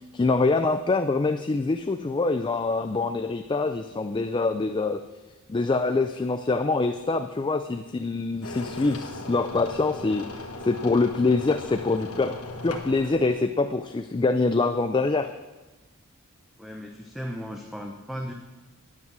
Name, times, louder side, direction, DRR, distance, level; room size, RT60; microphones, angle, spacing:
voice 1, 0.1-5.0 5.5-12.4 12.6-15.3, left 3 dB, 20° left, 8 dB, 0.3 m, -25 dB
sound 1, 8.4-13.4, left 2 dB, 75° left, 1.3 m, -38 dB
voice 2, 16.6-18.3, equal, ahead, 1 dB, 0.7 m, -36 dB
9.8 x 9.5 x 6.1 m, 1.2 s
head